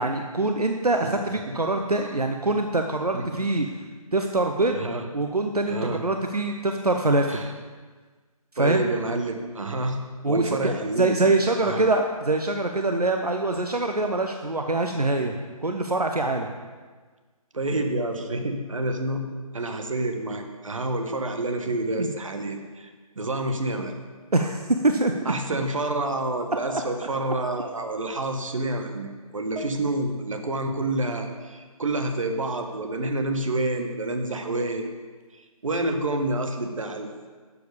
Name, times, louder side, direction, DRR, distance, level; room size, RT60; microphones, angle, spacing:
voice 1, 0.0-3.7 4.1-4.8 5.1-7.4 8.5-8.8 10.2-15.3 15.6-16.5 22.0-22.1 24.3-25.1 26.7-26.8 29.6-29.7, right 2 dB, 85° right, 4 dB, 0.9 m, -24 dB
voice 2, 1.0-1.5 3.1-3.3 4.7-5.1 5.7-6.0 7.3-7.5 8.6-10.0 10.2-11.1 11.6-11.8 17.5-19.2 19.5-23.9 25.2-34.9 35.3-37.3, right 2 dB, 60° right, 5 dB, 1.5 m, -28 dB
12.0 x 7.8 x 5.1 m, 1.4 s
figure-of-eight pair, 145°, 19 cm